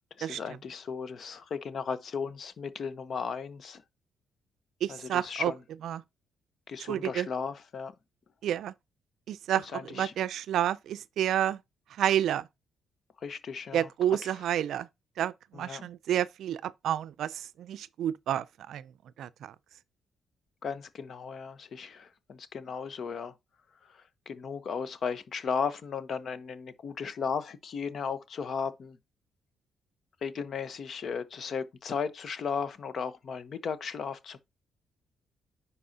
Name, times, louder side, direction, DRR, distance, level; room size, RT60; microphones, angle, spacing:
voice 1, 0.2-3.8 4.9-5.6 6.7-7.9 9.7-10.1 13.2-13.9 14.2-14.3 15.5-15.8 20.6-23.3 23.8-29.0 30.2-34.4, left 6 dB, 55° left, 1.0 m, -35 dB
voice 2, 4.8-5.5 5.8-6.0 6.9-7.3 8.4-8.7 9.3-11.6 12.0-12.5 13.7-14.9 15.2-18.9 19.2-19.5, right 11 dB, 75° right, 0.4 m, -30 dB
10.0 x 4.2 x 2.8 m
cardioid pair, 90°, 0 cm